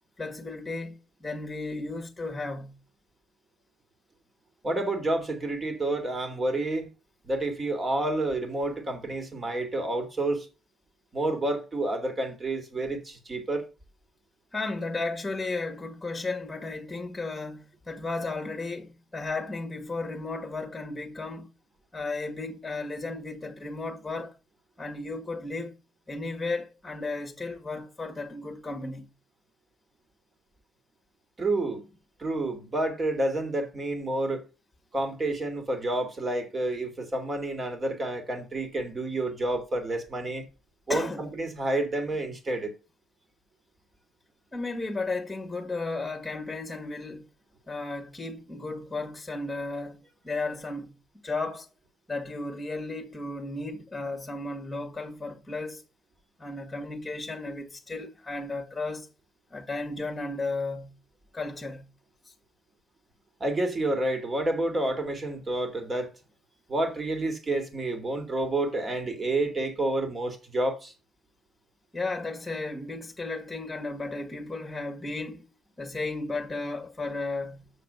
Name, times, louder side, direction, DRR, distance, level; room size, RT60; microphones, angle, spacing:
voice 1, 0.2-2.8 14.5-21.5 21.9-24.3 24.8-25.7 26.1-29.1 40.9-41.2 44.5-47.3 47.7-51.0 51.2-51.7 52.1-55.8 56.4-59.1 59.5-60.9 61.3-61.9 62.3-62.4 71.9-75.5 75.8-77.7, left 3 dB, 10° left, 1.8 m, -34 dB
voice 2, 4.6-6.9 7.2-10.5 11.1-13.7 31.4-31.8 32.2-34.4 34.9-40.5 40.9-42.7 63.4-66.1 66.7-70.9, right 2 dB, 25° right, 2.3 m, -29 dB
7.0 x 6.6 x 6.8 m
cardioid pair, 115°, 0 cm